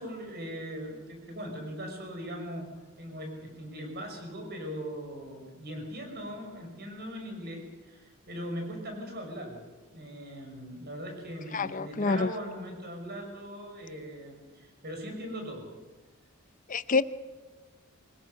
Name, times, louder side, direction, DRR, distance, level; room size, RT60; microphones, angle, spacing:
voice 1, 0.0-2.7 3.0-15.7, equal, 45° right, 5.9 m, -40 dB
voice 2, 11.5-12.3 16.7-17.0, left 4 dB, 35° left, 0.7 m, -27 dB
24.5 x 20.5 x 6.5 m
head